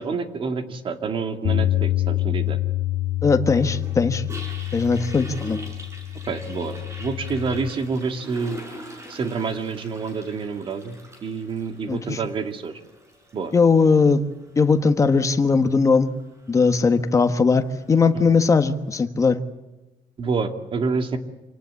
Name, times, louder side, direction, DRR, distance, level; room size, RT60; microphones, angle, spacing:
voice 1, 0.0-2.6 6.3-6.7 7.0-8.6 9.1-12.8 13.3-13.5 18.1-18.4 20.2-21.2, right 4 dB, 40° right, 7 dB, 2.3 m, -28 dB
Bass guitar, 1.4-7.7, left 14 dB, 55° left, 1.5 m, -26 dB
voice 2, 3.2-4.2 4.7-5.6 11.9-12.2 13.5-14.2 14.6-16.1 16.5-19.4, left 4 dB, 25° left, 9 dB, 1.4 m, -19 dB
Toilet flush, 3.5-18.7, equal, 20° right, 6.5 m, -44 dB
27.0 x 19.0 x 8.4 m, 1.1 s
cardioid pair, 155°, 14 cm